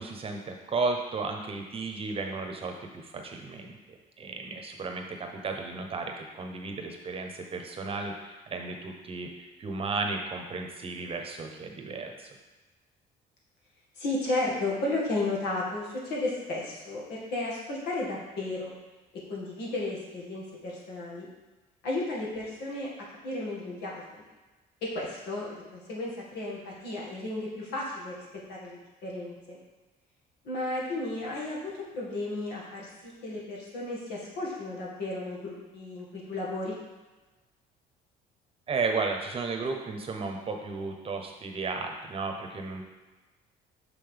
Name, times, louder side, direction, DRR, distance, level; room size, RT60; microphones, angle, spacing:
voice 1, 0.0-12.3 38.7-42.8, right 4 dB, 35° right, 3 dB, 0.9 m, -34 dB
voice 2, 14.0-18.7 19.3-21.3 21.8-22.9 23.2-24.0 24.8-29.6 30.4-36.8, left 2 dB, 75° left, -4 dB, 2.0 m, -33 dB
6.5 x 5.7 x 3.5 m, 1.2 s
cardioid pair, 110°, 17 cm